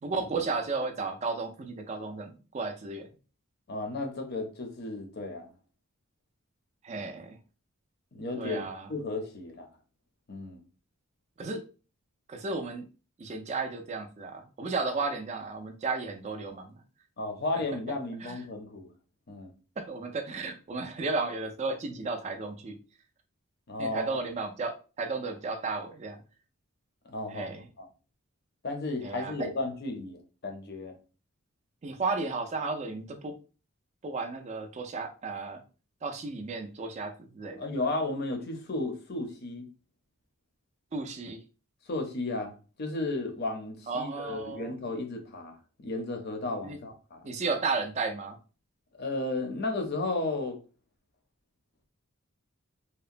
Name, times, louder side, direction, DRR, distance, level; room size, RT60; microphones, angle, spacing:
voice 1, 0.0-3.1 6.8-7.4 8.4-8.9 11.4-11.6 12.3-12.9 13.2-16.8 18.2-18.4 19.8-22.8 23.8-26.2 27.3-27.6 29.0-29.5 31.8-33.4 34.0-35.6 36.0-37.7 40.9-41.4 43.9-44.7 46.6-46.8 47.2-48.4, right 3 dB, 30° right, 0.3 m, -34 dB
voice 2, 3.7-5.5 8.1-9.7 10.3-10.6 17.2-18.9 19.3-19.5 23.7-24.2 27.1-27.9 28.6-31.0 37.6-39.7 41.9-45.6 45.8-47.3 49.0-50.6, left 2 dB, 45° left, 0.6 m, -34 dB
2.8 x 2.0 x 2.4 m
head